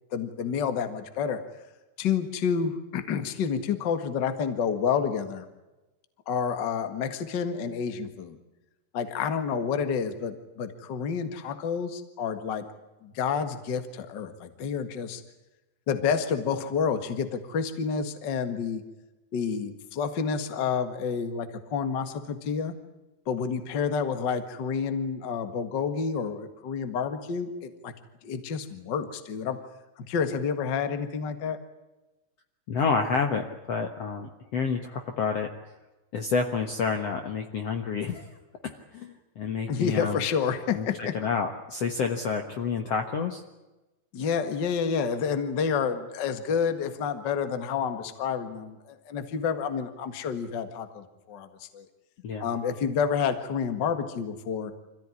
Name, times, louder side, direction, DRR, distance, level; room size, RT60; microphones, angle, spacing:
voice 1, 0.1-1.4 2.0-5.4 6.2-8.4 8.9-12.6 13.0-15.2 15.9-18.8 19.3-22.7 23.2-27.9 28.2-29.6 30.0-31.6 39.7-41.1 44.1-51.8 52.4-54.7, left 6 dB, 70° left, 9 dB, 1.0 m, -29 dB
voice 2, 32.7-35.5 36.1-38.4 38.6-40.2 40.7-43.4 52.2-52.5, left 5 dB, 90° left, 5 dB, 1.3 m, -29 dB
26.0 x 16.0 x 9.8 m, 1.1 s
omnidirectional pair, 5.1 m